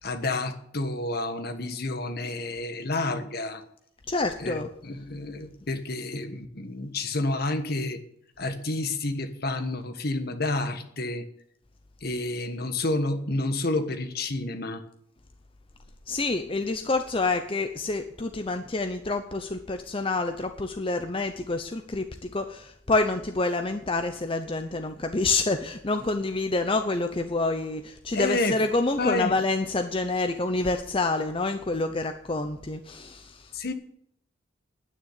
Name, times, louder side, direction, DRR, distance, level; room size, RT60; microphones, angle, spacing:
voice 1, 0.0-3.6 4.4-8.0 8.4-11.3 12.0-14.8 28.1-28.6 29.0-29.3 33.5-33.7, left 2 dB, 55° left, 9 dB, 1.4 m, -29 dB
voice 2, 4.1-4.7 16.1-33.5, left 3 dB, 30° left, 7 dB, 0.7 m, -27 dB
9.9 x 9.3 x 9.6 m, 0.73 s
head